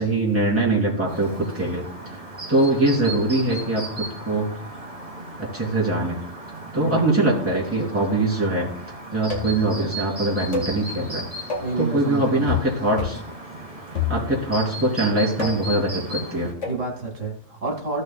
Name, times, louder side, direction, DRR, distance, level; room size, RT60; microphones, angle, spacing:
voice 1, 0.0-2.2 2.5-4.5 5.4-6.2 6.7-8.7 9.1-11.3 11.9-13.2 14.1-16.5, right 2 dB, 10° right, -6 dB, 3.2 m, -22 dB
Chirp tweet, 1.1-16.5, right 1 dB, 30° right, 1.8 m, -36 dB
voice 2, 6.7-7.1 11.6-12.5 16.7-18.0, right 4 dB, 75° right, 0 dB, 2.2 m, -29 dB
sound 1, 9.3-9.7 10.5-10.8 11.5-11.8 12.5-12.7 13.0-13.3 13.9-14.5 15.4-15.8 16.6-16.8, left 6 dB, 70° left, 2.1 m, -28 dB
15.5 x 6.6 x 2.3 m, 0.68 s
omnidirectional pair, 1.3 m